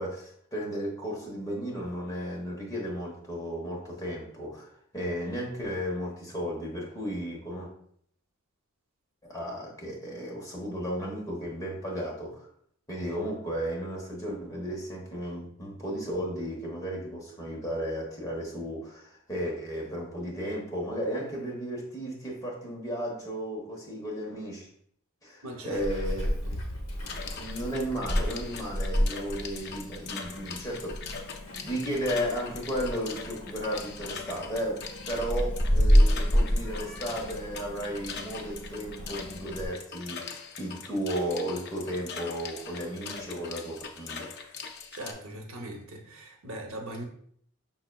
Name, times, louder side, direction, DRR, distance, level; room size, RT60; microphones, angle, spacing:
voice 1, 0.0-7.7 9.2-12.5 12.9-24.7 25.2-26.3 27.4-31.0 31.6-44.3, equal, 15° left, -3 dB, 1.1 m, -34 dB
voice 2, 25.4-25.8 26.2-26.6 44.9-47.0, right 1 dB, 70° right, 3 dB, 0.8 m, -40 dB
Meow, 25.7-39.7, equal, 70° left, 0.9 m, -29 dB
sound 1, 27.1-45.1, left 5 dB, 50° left, 0.5 m, -41 dB
5.7 x 3.8 x 2.3 m, 0.65 s
head